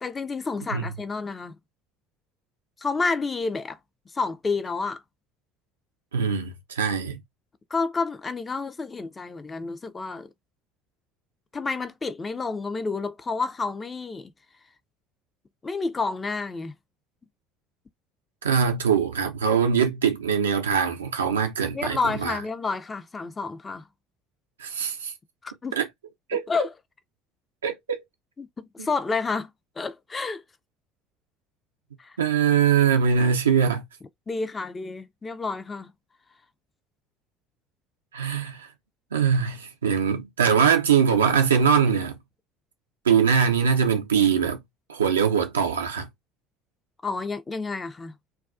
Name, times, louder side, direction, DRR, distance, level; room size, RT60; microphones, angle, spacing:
voice 1, 0.0-1.5 2.8-3.8 4.1-5.0 7.7-10.3 11.5-14.3 15.6-16.7 21.7-23.8 25.4-25.8 26.3-26.7 28.4-29.5 29.8-30.4 32.0-32.2 34.3-35.9 47.0-48.1, left 4 dB, 25° left, 0.4 m, -29 dB
voice 2, 6.1-7.2 18.4-22.4 24.6-25.1 25.7-25.9 26.3-26.4 27.6-28.0 32.2-33.8 38.1-38.7 39.1-42.2 43.1-44.6 44.9-46.1, right 7 dB, 85° right, 0.4 m, -22 dB
2.3 x 2.2 x 2.4 m
figure-of-eight pair, 60°, 0 cm